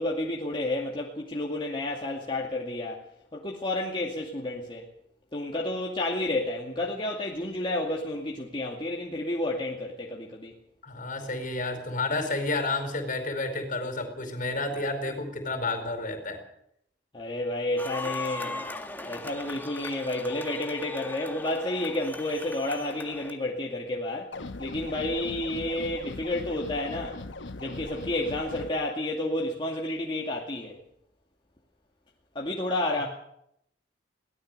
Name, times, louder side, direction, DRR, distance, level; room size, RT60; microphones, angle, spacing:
voice 1, 0.0-3.0 3.3-4.9 5.3-10.5 17.1-18.7 19.1-24.3 24.6-27.2 27.6-30.8 32.3-33.1, left 1 dB, 25° left, -2 dB, 2.3 m, -31 dB
voice 2, 10.8-16.4, left 2 dB, 45° left, 7 dB, 4.7 m, -30 dB
sound 1, 17.8-23.3, left 2 dB, 10° left, 1.9 m, -39 dB
sound 2, 24.3-28.7, left 2 dB, 75° left, 1.1 m, -39 dB
22.5 x 17.5 x 6.7 m, 0.75 s
head